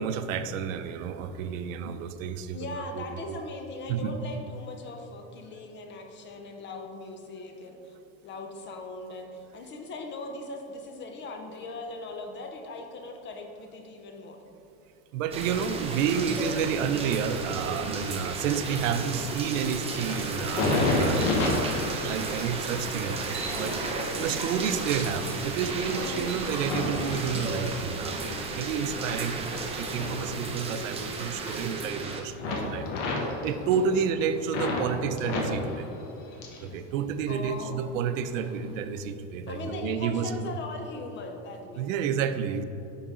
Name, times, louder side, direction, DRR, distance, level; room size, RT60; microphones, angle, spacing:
voice 1, 0.0-2.7 2.9-3.0 3.9-4.2 15.1-32.9 33.4-35.9 36.6-40.5 41.8-42.6, right 7 dB, 90° right, 10 dB, 0.6 m, -30 dB
voice 2, 2.5-8.0 8.2-14.4 24.1-24.4 26.0-26.4 33.6-33.9 37.3-38.0 39.5-41.9, left 2 dB, 30° left, 4 dB, 0.7 m, -40 dB
sound 1, 15.3-32.2, right 3 dB, 15° right, 0.5 m, -33 dB
sound 2, 20.4-28.0 28.5-31.1 31.3-32.1 32.4-34.9 35.2-36.7 37.0-37.8 38.3-38.5, left 2 dB, 65° left, 1.4 m, -32 dB
10.0 x 4.0 x 3.7 m, 2.9 s
supercardioid pair, 140°, 38 cm